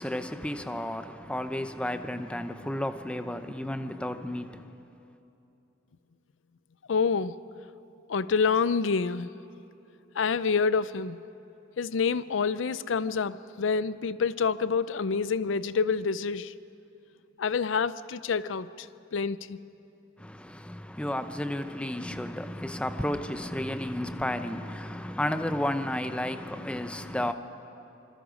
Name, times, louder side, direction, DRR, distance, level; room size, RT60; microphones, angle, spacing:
voice 1, 0.0-4.8 20.2-27.3, left 1 dB, 5° left, 0.7 m, -32 dB
voice 2, 6.9-7.4 8.1-9.3 10.2-11.2 11.8-16.5 17.4-18.9 19.1-19.6, left 5 dB, 90° left, 0.5 m, -27 dB
25.5 x 25.5 x 5.2 m
head